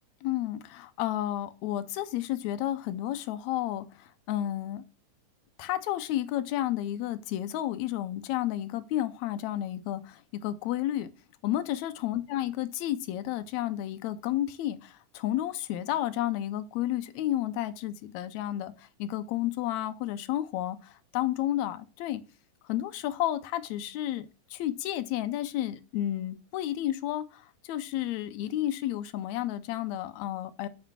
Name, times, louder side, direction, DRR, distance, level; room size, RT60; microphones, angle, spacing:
voice 1, 0.2-4.8 5.6-11.1 11.4-22.2 22.6-30.7, left 13 dB, 80° left, 1.8 m, -31 dB
7.4 x 5.5 x 6.1 m
omnidirectional pair, 3.6 m